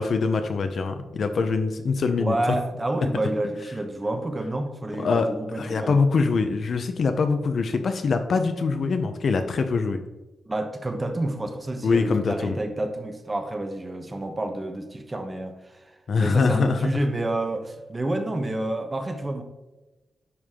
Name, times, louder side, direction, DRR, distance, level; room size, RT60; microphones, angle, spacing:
voice 1, 0.0-2.6 5.0-5.3 5.6-10.0 11.8-12.6 16.1-16.8, left 4 dB, 60° left, 7 dB, 0.8 m, -23 dB
voice 2, 2.2-6.0 10.5-15.9 16.2-19.4, right 1 dB, 25° right, 5 dB, 1.1 m, -29 dB
10.0 x 4.8 x 3.7 m, 1.1 s
wide cardioid pair, 105°, 0 cm